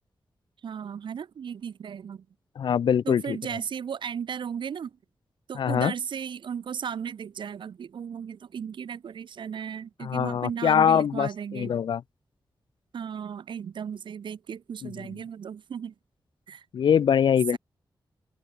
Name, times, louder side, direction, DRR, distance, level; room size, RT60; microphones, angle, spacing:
voice 1, 0.6-2.3 3.0-5.0 5.5-11.7 12.9-15.9 16.5-16.6 17.5-17.6, right 7 dB, 85° right, 1.1 m, -35 dB
voice 2, 2.6-3.4 5.6-5.9 10.0-12.0 14.8-14.9 16.7-17.6, left 8 dB, 80° left, 0.4 m, -23 dB
wide cardioid pair, 90°, 8 cm